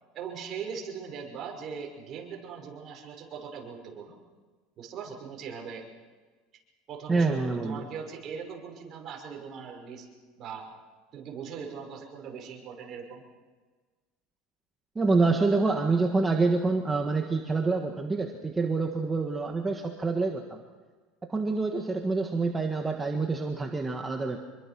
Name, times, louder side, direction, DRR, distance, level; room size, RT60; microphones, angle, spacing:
voice 1, 0.1-4.2 4.8-5.9 6.9-10.1 10.4-10.7 11.1-13.2, right 6 dB, 40° right, 1 dB, 5.8 m, -40 dB
voice 2, 7.1-7.9 14.9-20.6 21.3-24.4, right 3 dB, 15° right, 2 dB, 1.6 m, -27 dB
26.5 x 22.5 x 6.2 m, 1.4 s
supercardioid pair, 145°, 0 cm